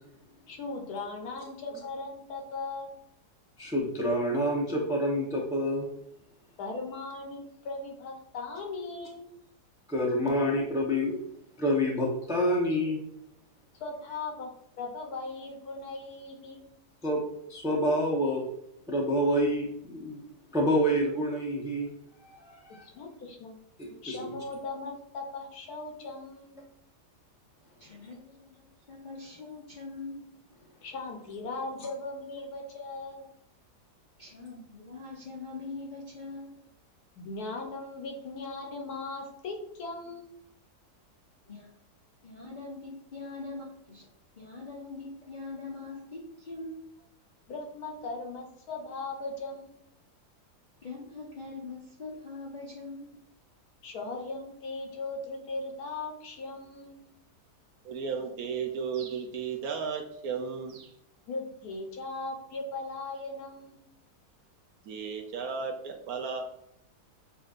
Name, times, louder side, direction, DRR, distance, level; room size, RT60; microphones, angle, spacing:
voice 1, 0.5-2.9 6.6-9.3 13.8-14.5 14.8-16.7 22.9-23.5 24.0-26.6 30.8-33.3 37.2-40.2 47.5-49.7 53.8-57.0 61.3-63.8, left 3 dB, 70° left, 2 dB, 1.3 m, -38 dB
voice 2, 3.6-5.9 9.9-11.2 11.6-13.0 17.0-17.2 17.5-18.4 18.9-20.2 20.5-21.9 22.3-22.8 23.8-24.2, equal, 5° right, -2 dB, 0.4 m, -27 dB
voice 3, 27.8-30.2 34.2-36.6 41.5-41.7 42.2-44.1 44.4-46.8 50.8-53.2, left 3 dB, 45° left, -4 dB, 0.6 m, -42 dB
voice 4, 57.8-60.9 64.9-66.4, right 6 dB, 70° right, 3 dB, 1.0 m, -34 dB
7.2 x 2.6 x 2.5 m, 0.74 s
omnidirectional pair, 1.8 m